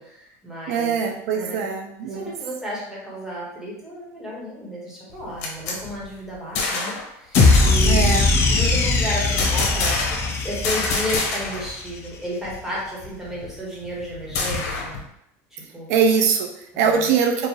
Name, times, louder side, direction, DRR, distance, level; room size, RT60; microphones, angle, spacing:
voice 1, 0.0-1.0 1.3-1.6 2.0-8.1 8.5-15.0 15.5-15.9 16.7-17.1, equal, 5° right, -6 dB, 1.4 m, -33 dB
voice 2, 0.7-2.3 7.8-8.3 15.9-17.5, right 6 dB, 75° right, 3 dB, 0.5 m, -22 dB
sound 1, 5.1-7.0 7.3-7.8 9.4-10.3 10.6-11.7 12.0-12.1 12.4-15.0, left 3 dB, 80° left, 1.1 m, -27 dB
sound 2, 7.4-11.7, left 3 dB, 30° left, 0.5 m, -19 dB
4.6 x 2.5 x 3.1 m, 0.78 s
supercardioid pair, 145°, 8 cm